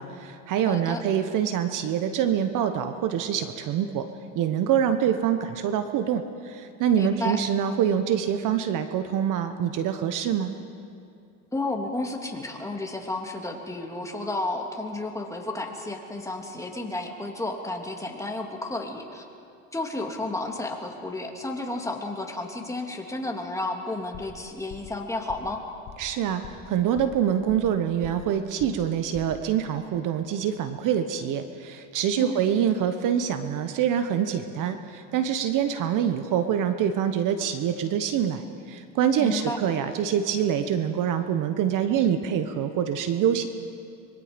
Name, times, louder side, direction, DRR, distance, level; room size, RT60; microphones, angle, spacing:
voice 1, 0.0-4.1 4.3-10.5 26.0-43.5, right 9 dB, 50° right, 9 dB, 1.2 m, -25 dB
voice 2, 0.7-1.0 7.0-7.4 11.5-19.3 19.7-25.6 32.2-32.6 39.2-39.6, left 2 dB, 10° left, 2 dB, 2.4 m, -32 dB
sound 1, 24.1-24.4 24.7-25.0 25.3-25.6 25.9-26.1 26.4-26.7 27.0-27.8 28.0-28.3 28.6-28.9 29.1-29.4, left 8 dB, 50° left, 1.9 m, -43 dB
25.0 x 22.5 x 5.2 m, 2.5 s
supercardioid pair, 110°, 39 cm